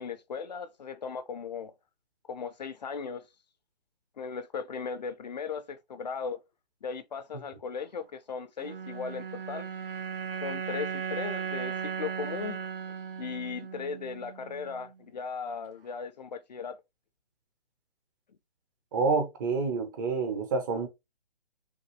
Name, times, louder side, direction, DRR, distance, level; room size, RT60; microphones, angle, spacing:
voice 1, 0.0-1.7 2.3-3.3 4.2-6.4 6.8-9.7 10.4-12.7 13.2-16.8, left 5 dB, 40° left, 0.5 m, -37 dB
sound 1, 8.6-15.0, right 6 dB, 60° right, 1.4 m, -37 dB
voice 2, 18.9-20.9, right 4 dB, 20° right, 0.6 m, -28 dB
5.8 x 2.5 x 3.0 m
hypercardioid pair, 145°, 32 cm